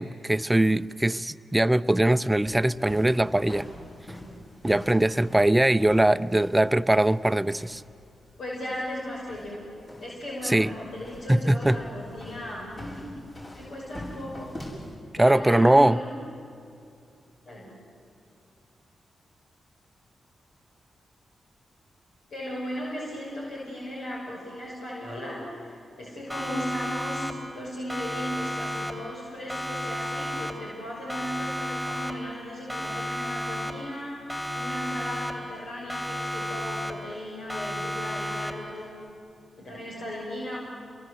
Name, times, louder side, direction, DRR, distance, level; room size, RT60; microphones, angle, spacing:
voice 1, 0.0-3.7 4.6-7.8 10.4-10.7 11.3-11.8 15.2-16.0, right 1 dB, 15° right, 13 dB, 0.7 m, -21 dB
sound 1, 2.5-14.9, left 1 dB, 45° left, 7.0 m, -45 dB
voice 2, 8.4-9.7 10.0-13.1 13.5-14.6 15.2-16.1 17.5-17.8 22.3-25.7 26.0-34.2 34.5-38.9 39.6-40.6, equal, 75° left, -5 dB, 6.2 m, -36 dB
Siren, 26.3-27.6 27.9-29.2 29.5-30.8 31.1-32.4 32.7-34.0 34.3-35.6 35.9-37.2 37.5-38.8, equal, 10° left, 3.5 m, -33 dB
29.5 x 22.5 x 7.9 m, 2.6 s
supercardioid pair, 45°, 0 cm